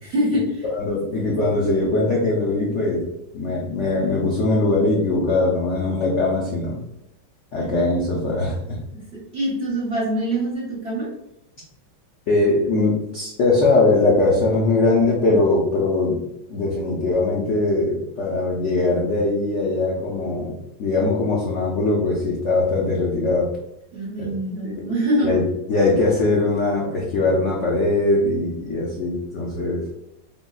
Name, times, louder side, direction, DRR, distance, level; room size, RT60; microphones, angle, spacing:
voice 1, 0.0-0.6 8.9-11.1 23.9-25.3, right 1 dB, 55° right, -6 dB, 0.7 m, -24 dB
voice 2, 0.7-3.0 3.3-6.8 7.5-8.8 12.3-16.2 16.5-23.5 24.2-24.3 24.6-24.9 25.2-25.4 25.7-29.8, left 2 dB, 80° left, -3 dB, 0.6 m, -21 dB
3.7 x 2.1 x 2.3 m, 0.86 s
omnidirectional pair, 2.0 m